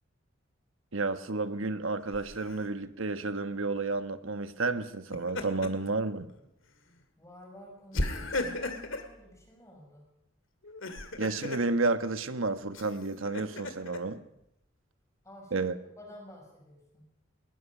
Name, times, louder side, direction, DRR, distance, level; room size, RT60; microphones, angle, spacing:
voice 1, 0.9-6.3 11.2-14.2 15.5-15.7, right 3 dB, 80° right, 10 dB, 1.2 m, -31 dB
Laughter, 2.1-2.7 4.9-5.9 6.3-6.5 7.9-9.1 10.6-11.7 12.7-14.0, left 2 dB, 75° left, 2.3 m, -35 dB
voice 2, 7.2-10.1 15.2-15.7 16.0-17.1, left 1 dB, 15° left, 0 dB, 6.3 m, -51 dB
21.5 x 20.0 x 6.1 m, 0.85 s
head